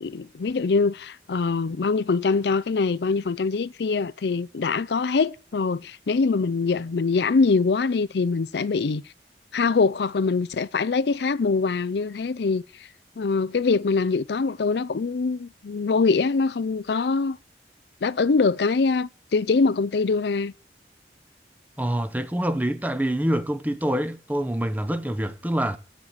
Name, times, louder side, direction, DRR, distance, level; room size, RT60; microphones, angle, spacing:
voice 1, 0.0-9.0 9.5-12.6 13.2-17.4 18.0-20.5, left 4 dB, 70° left, 0.5 m, -23 dB
voice 2, 21.8-25.8, right 1 dB, 10° right, 0.7 m, -26 dB
8.8 x 7.3 x 7.9 m
head